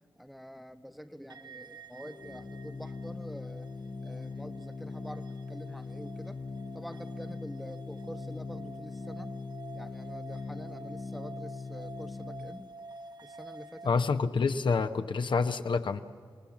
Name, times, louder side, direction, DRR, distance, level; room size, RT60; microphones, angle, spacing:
voice 1, 0.2-3.7 4.0-6.4 6.7-9.4 9.7-12.7 13.2-13.9, equal, ahead, 9 dB, 1.0 m, -46 dB
sound 1, 1.3-13.9, right 2 dB, 55° right, 1.1 m, -49 dB
Organ, 2.0-12.8, left 3 dB, 35° left, 0.6 m, -41 dB
voice 2, 13.8-16.0, left 4 dB, 65° left, 8 dB, 0.8 m, -27 dB
27.5 x 19.5 x 7.3 m, 2.1 s
wide cardioid pair, 80°, 9 cm